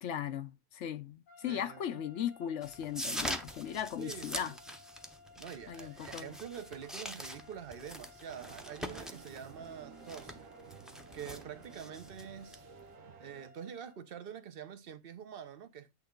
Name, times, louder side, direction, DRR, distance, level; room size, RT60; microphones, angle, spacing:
voice 1, 0.0-4.5 5.7-6.4, left 9 dB, 65° left, 1.0 m, -38 dB
sound 1, 1.3-14.1, left 4 dB, 85° left, 2.6 m, -59 dB
voice 2, 1.4-2.0 4.0-4.6 5.4-10.4 11.1-12.6 13.2-15.9, right 8 dB, 50° right, 1.0 m, -46 dB
sound 2, 2.6-12.9, equal, ahead, 0.7 m, -44 dB
sound 3, 8.3-13.5, right 8 dB, 85° right, 1.2 m, -53 dB
8.7 x 3.5 x 5.1 m
omnidirectional pair, 1.3 m